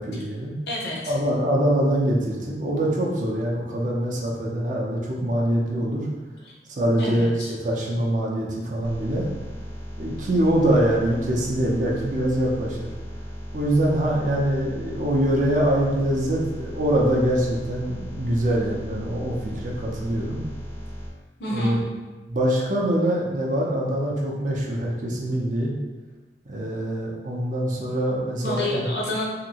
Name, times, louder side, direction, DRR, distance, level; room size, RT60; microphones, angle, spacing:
voice 1, 0.0-0.5 1.1-6.1 6.7-9.3 10.0-12.9 13.5-20.4 21.5-21.8 22.3-25.7 26.5-28.9, right 1 dB, 40° right, -3 dB, 0.5 m, -24 dB
voice 2, 0.7-1.1 6.5-6.6 7.0-7.5 21.4-21.8 28.4-29.3, left 1 dB, 60° left, -3 dB, 0.7 m, -29 dB
sound 1, 8.8-21.1, equal, 10° left, 0.6 m, -36 dB
2.9 x 2.6 x 2.8 m, 1.2 s
head